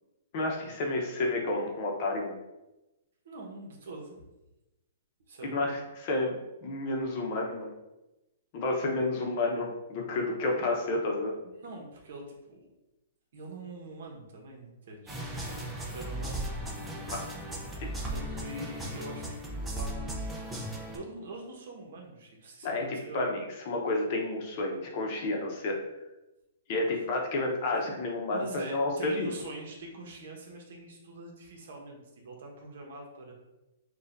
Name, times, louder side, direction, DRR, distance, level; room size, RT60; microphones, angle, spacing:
voice 1, 0.3-2.4 5.4-6.3 6.6-7.7 8.5-11.3 17.1-17.2 17.8-17.9 22.6-25.8 26.7-29.3, left 2 dB, 40° left, 0 dB, 0.8 m, -30 dB
voice 2, 3.2-4.2 5.3-5.8 11.4-12.6 13.3-16.4 18.0-20.4 20.9-23.3 28.3-33.3, right 2 dB, 65° right, 0 dB, 1.2 m, -44 dB
sound 1, 15.1-21.0, right 1 dB, 5° right, 0.6 m, -36 dB
6.4 x 2.4 x 2.6 m, 0.99 s
hypercardioid pair, 160°, 0 cm